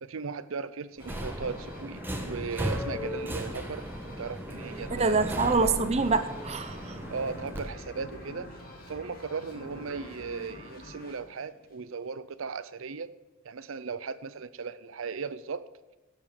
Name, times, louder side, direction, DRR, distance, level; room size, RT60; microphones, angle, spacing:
voice 1, 0.0-3.9 4.2-5.7 7.1-8.5 8.9-13.1 13.4-15.7, right 5 dB, 70° right, 14 dB, 0.6 m, -37 dB
sound 1, 1.0-12.2, equal, 45° left, 2.3 m, -48 dB
Subway metro underground, 1.0-7.6, equal, 10° right, 1.4 m, -36 dB
Sliding door, 4.1-11.3, equal, 80° left, 3.7 m, -50 dB
voice 2, 4.9-7.0, right 4 dB, 30° right, 11 dB, 0.7 m, -26 dB
13.0 x 7.3 x 7.3 m, 1.1 s
head